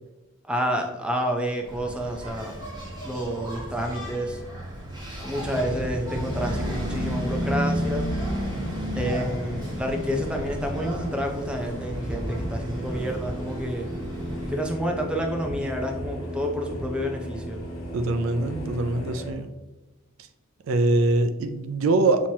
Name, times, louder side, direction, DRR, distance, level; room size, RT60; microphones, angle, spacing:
voice 1, 0.5-2.5 3.0-4.4 5.2-8.1 8.9-13.9 14.5-17.6, equal, 5° right, 2 dB, 0.5 m, -29 dB
Engine, 1.6-14.6, equal, 20° right, 1.1 m, -33 dB
sound 1, 5.0-19.3, equal, 90° left, 1.1 m, -36 dB
voice 2, 17.9-19.5 20.7-22.3, right 2 dB, 70° right, 10 dB, 0.4 m, -23 dB
6.1 x 2.9 x 2.7 m, 1.1 s
head